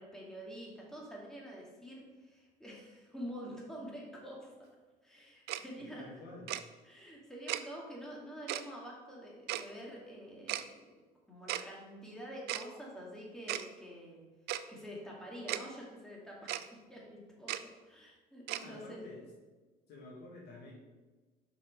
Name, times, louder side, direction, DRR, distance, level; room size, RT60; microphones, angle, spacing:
voice 1, 0.0-4.7 5.0-6.0 6.8-14.2 14.7-16.5 16.9-19.0, equal, 5° left, -4 dB, 2.3 m, -47 dB
Tick-tock, 5.5-5.6 6.5-6.6 7.5-7.6 8.5-8.6 9.5-9.6 10.5-10.6 11.5-11.6 12.5-12.6 13.5-13.7 14.5-14.6 15.5-15.6 16.5-16.7 17.5-17.6 18.5-18.6, right 14 dB, 75° right, 0.4 m, -35 dB
voice 2, 5.8-6.6 18.4-19.3 19.9-20.7, left 2 dB, 75° left, -3 dB, 2.0 m, -50 dB
6.0 x 5.6 x 4.8 m, 1.3 s
cardioid pair, 110°, 17 cm